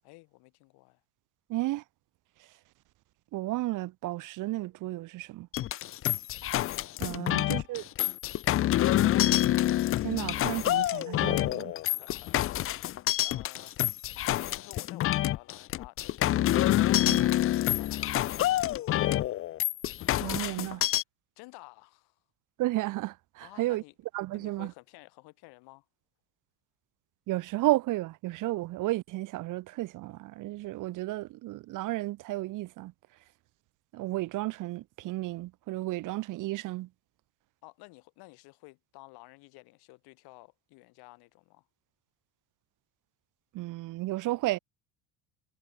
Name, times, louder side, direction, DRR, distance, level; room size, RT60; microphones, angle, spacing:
voice 1, 0.0-1.0 7.2-7.8 11.5-11.6 11.9-12.6 13.2-13.8 14.3-18.5 21.4-22.2 23.4-23.9 24.3-25.9 37.6-41.7, left 25 dB, 70° left, 7.7 m, -53 dB
voice 2, 1.5-1.8 3.3-5.5 7.0-7.9 10.0-11.7 17.1-17.3 20.2-20.8 22.6-23.8 24.1-24.7 27.3-32.9 33.9-36.9 43.5-44.6, right 18 dB, 50° right, 1.0 m, -33 dB
sound 1, 5.5-21.0, left 14 dB, 35° left, 0.6 m, -27 dB
cardioid pair, 145°, 39 cm